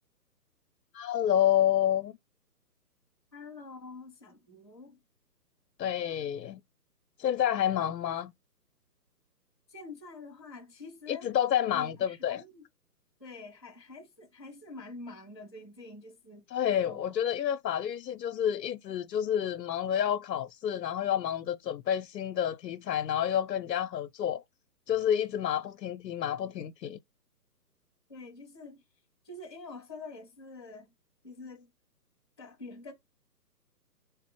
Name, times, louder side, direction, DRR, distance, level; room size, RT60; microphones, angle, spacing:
voice 1, 0.9-2.1 5.8-6.6 7.2-8.3 11.1-12.4 16.5-24.4 24.9-27.0, left 10 dB, 85° left, 0.6 m, -29 dB
voice 2, 3.3-5.0 9.7-11.3 11.7-12.6 13.2-16.4 16.8-17.2 28.1-28.8 29.2-30.9 31.2-31.7 32.4-32.9, left 3 dB, 20° left, 0.6 m, -46 dB
3.4 x 2.1 x 4.3 m
hypercardioid pair, 165°, 49 cm